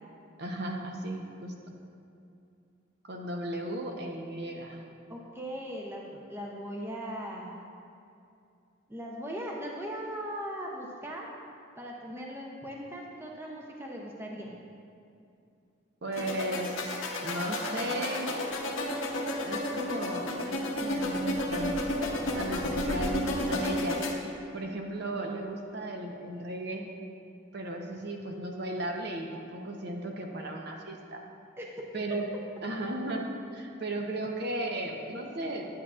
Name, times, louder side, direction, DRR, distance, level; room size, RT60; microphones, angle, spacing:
voice 1, 0.4-1.5 3.0-4.8 16.0-17.0 17.2-18.3 19.4-21.8 22.3-24.0 24.5-26.9 27.5-31.2 31.9-32.2 32.6-35.7, right 1 dB, 55° right, 1 dB, 0.8 m, -35 dB
voice 2, 5.1-7.6 8.9-11.3 11.8-14.5 31.6-31.9, equal, 10° right, -2 dB, 0.6 m, -39 dB
sound 1, 16.1-24.1, left 1 dB, 85° left, 0.9 m, -32 dB
10.5 x 8.4 x 2.4 m, 2.6 s
head